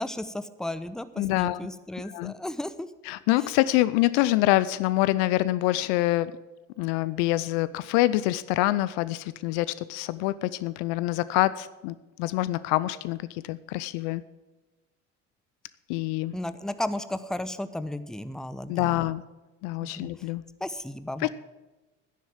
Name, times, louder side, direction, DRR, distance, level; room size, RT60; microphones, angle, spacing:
voice 1, 0.0-2.9 16.3-19.1 19.8-20.1 20.6-21.3, left 1 dB, ahead, 13 dB, 0.8 m, -34 dB
voice 2, 1.2-1.7 2.0-2.3 3.0-6.3 6.8-14.2 15.9-16.3 18.7-19.2 19.6-20.4 21.2-21.3, left 17 dB, 60° left, 17 dB, 0.6 m, -26 dB
11.0 x 10.5 x 7.4 m, 1.1 s
figure-of-eight pair, 60°, 36 cm